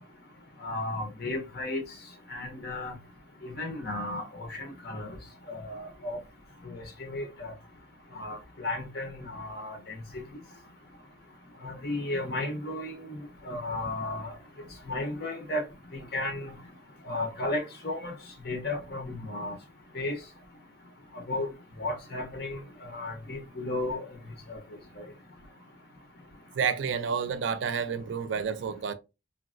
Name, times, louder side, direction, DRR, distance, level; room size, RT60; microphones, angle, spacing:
voice 1, 0.6-1.8 2.3-2.9 3.4-5.1 5.5-6.2 6.6-7.5 8.2-10.0 11.6-13.2 13.4-14.3 14.9-15.6 15.9-16.6 17.1-18.1 18.4-19.6 19.9-20.2 21.3-21.5 21.8-22.6 22.9-24.0 24.5-24.6, left 2 dB, 50° left, 0.8 m, -34 dB
voice 2, 26.5-28.9, right 6 dB, 65° right, 0.3 m, -30 dB
3.7 x 2.1 x 2.4 m
head